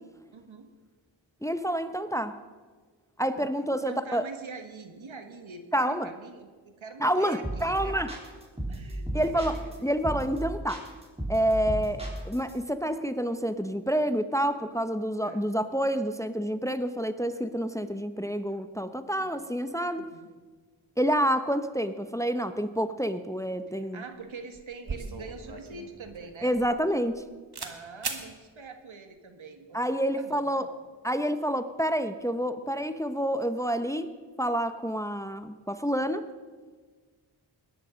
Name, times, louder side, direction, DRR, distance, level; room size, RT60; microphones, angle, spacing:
voice 1, 0.3-0.7 3.3-3.5 3.7-8.2 8.7-9.8 15.2-15.5 19.1-19.4 20.0-20.3 23.7-26.6 27.6-29.8 30.2-30.8, right 4 dB, 75° right, 6 dB, 1.7 m, -44 dB
voice 2, 1.4-2.4 3.2-4.2 5.7-6.1 7.0-8.1 9.1-10.8 11.3-20.1 21.0-24.0 26.4-27.2 29.7-30.7 31.0-34.1 34.4-36.2, equal, 5° left, 10 dB, 0.8 m, -28 dB
sound 1, 7.4-7.8 8.1-9.7 10.0-10.4 10.7-12.5, right 1 dB, 15° right, 4.0 m, -34 dB
sound 2, 24.1-24.3 24.5-27.2 27.5-27.8 28.0-28.3, right 4 dB, 55° right, 1.8 m, -38 dB
21.0 x 10.5 x 5.2 m, 1.4 s
cardioid pair, 50°, 47 cm